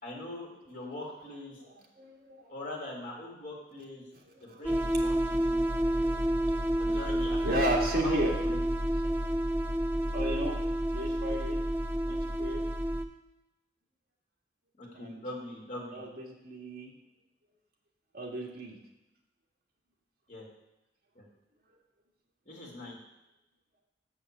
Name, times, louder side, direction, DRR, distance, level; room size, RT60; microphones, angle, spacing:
voice 1, 0.0-1.6 2.5-4.0 4.4-5.6 6.8-7.4 7.9-8.6 14.8-16.0 20.3-20.5 21.2-21.3 22.5-23.0, left 1 dB, 45° left, -3 dB, 2.5 m, -42 dB
voice 2, 1.6-2.5 2.8-2.9 4.3-5.3 5.8-6.2 6.6-7.0 7.4-8.4 10.1-10.6 10.9-11.6 12.1-12.6 14.9-15.2 15.9-16.9 18.1-18.8, right 1 dB, 55° right, -1 dB, 1.7 m, -35 dB
sound 1, 4.6-13.0, right 1 dB, 10° right, 0.5 m, -29 dB
6.5 x 6.2 x 7.3 m, 0.95 s
head